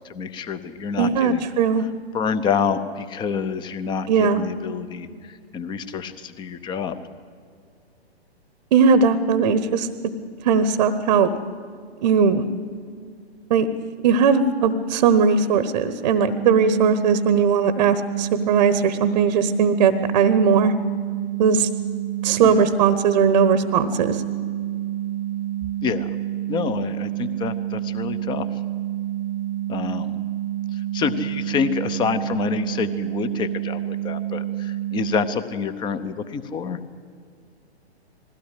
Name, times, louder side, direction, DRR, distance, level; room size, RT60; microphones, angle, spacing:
voice 1, 0.1-1.4 2.1-7.0 22.4-22.6 25.8-26.1 26.5-28.5 29.7-30.2 30.7-36.8, left 6 dB, 15° left, 12 dB, 0.8 m, -27 dB
voice 2, 1.0-1.9 4.1-4.4 8.7-9.9 10.4-11.3 12.0-12.4 13.5-13.7 14.0-20.7 21.4-21.7 22.2-24.2, right 6 dB, 45° right, 13 dB, 1.0 m, -19 dB
sound 1, 16.2-35.2, right 12 dB, 80° left, 3.2 m, -28 dB
20.5 x 16.0 x 8.3 m, 2.2 s
figure-of-eight pair, 120°, 32 cm